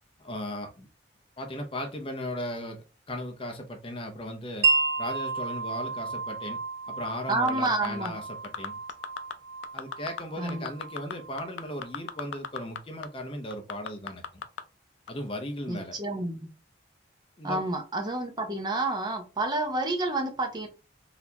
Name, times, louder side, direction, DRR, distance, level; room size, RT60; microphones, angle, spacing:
voice 1, 0.2-0.9 1.4-4.7 5.0-6.6 6.9-8.7 9.7-14.4 15.1-16.0 17.4-17.7, left 1 dB, 30° left, 0.6 m, -37 dB
Wind chime, 4.6-12.3, right 4 dB, 70° right, 0.6 m, -32 dB
sound 1, 7.3-8.1 8.4-9.3 9.6-10.2 10.5-12.8 13.0-13.1 13.5-14.6 15.1-15.2, left 7 dB, 80° left, 0.4 m, -35 dB
voice 2, 7.3-8.1 10.4-10.7 15.7-16.5 17.4-20.7, right 2 dB, 25° right, 0.6 m, -29 dB
4.1 x 2.7 x 2.8 m
head